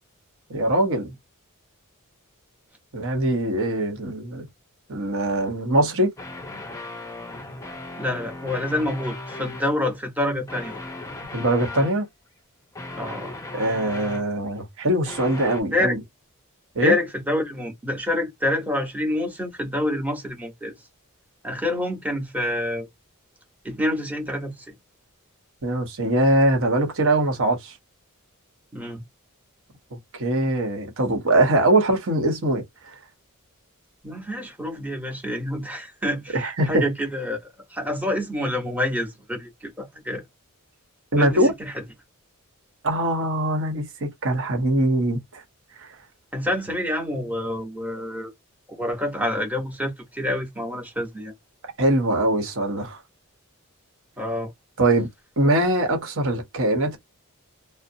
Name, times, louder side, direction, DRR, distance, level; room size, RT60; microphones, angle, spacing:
voice 1, 0.5-1.1 2.9-4.5 4.9-6.1 11.3-12.1 13.5-16.0 16.7-16.9 25.6-27.7 30.1-32.6 36.3-36.8 41.1-41.5 42.8-45.4 45.8-45.9 51.8-53.0 54.8-55.1 55.4-57.0, right 1 dB, 65° right, 1.0 m, -22 dB
sound 1, 6.2-9.7 10.5-12.0 12.7-14.5 15.0-15.6, left 2 dB, 15° left, 0.5 m, -37 dB
voice 2, 8.0-10.8 12.9-13.4 15.7-15.9 16.8-20.9 21.4-22.9 23.6-24.7 28.7-29.0 34.0-40.2 41.2-41.8 46.3-48.3 48.7-51.3 54.2-54.5, left 1 dB, 5° right, 0.9 m, -27 dB
2.7 x 2.0 x 2.7 m
head